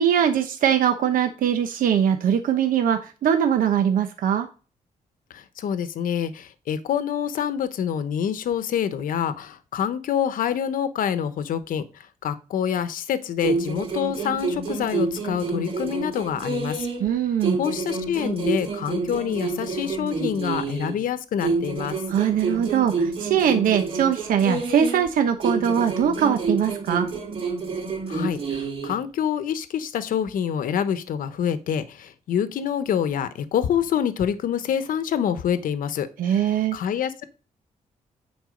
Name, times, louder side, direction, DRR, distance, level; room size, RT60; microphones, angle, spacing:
voice 1, 0.0-4.5 17.0-17.6 22.1-27.1 36.2-36.8, right 8 dB, 90° right, 6 dB, 1.0 m, -21 dB
voice 2, 5.3-16.9 17.6-22.0 28.1-37.2, left 8 dB, 85° left, 12 dB, 0.9 m, -26 dB
sound 1, 13.4-17.1 17.4-21.0 21.4-25.1 25.4-29.0, right 4 dB, 40° right, 2.4 m, -28 dB
9.5 x 4.6 x 5.1 m, 0.35 s
wide cardioid pair, 135°, 14 cm